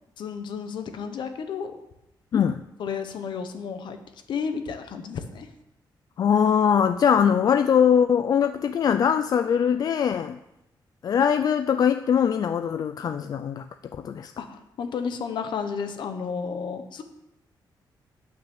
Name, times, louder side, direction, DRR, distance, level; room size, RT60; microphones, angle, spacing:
voice 1, 0.2-1.8 2.8-4.0 4.3-5.5 14.4-17.0, left 6 dB, 75° left, 7 dB, 1.2 m, -32 dB
voice 2, 2.3-2.6 6.2-10.4 11.0-13.7 14.0-14.3, left 8 dB, 50° left, 9 dB, 0.4 m, -21 dB
9.0 x 6.0 x 7.2 m, 0.87 s
cardioid pair, 130°, 8 cm